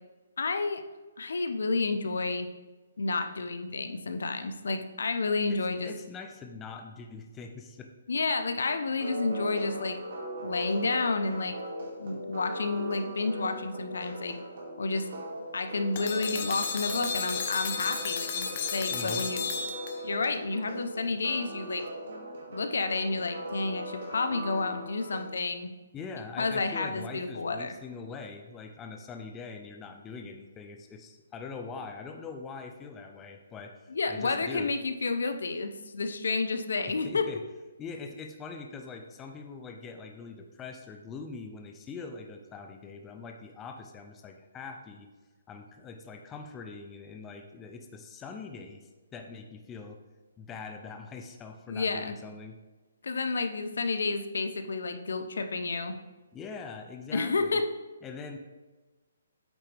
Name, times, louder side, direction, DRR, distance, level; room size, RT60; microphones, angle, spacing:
voice 1, 0.4-0.8 1.2-2.5 3.0-5.9 8.1-10.0 10.4-11.5 12.0-14.4 14.8-15.1 15.5-19.5 20.0-21.8 22.5-25.7 26.4-27.7 33.9-37.3 51.7-52.1 53.0-55.9 57.1-57.7, left 3 dB, 75° left, 8 dB, 0.7 m, -30 dB
voice 2, 5.5-7.9 18.9-19.3 25.9-34.7 36.9-37.4 37.8-45.1 45.5-50.0 50.4-52.6 56.3-57.6 58.0-58.4, left 4 dB, 10° left, 5 dB, 0.4 m, -43 dB
sound 1, 9.0-25.2, right 1 dB, 55° right, 2.4 m, -39 dB
sound 2, 16.0-20.3, left 6 dB, 35° left, 0.7 m, -33 dB
8.5 x 6.1 x 3.4 m, 1.2 s
hypercardioid pair, 170°, 0 cm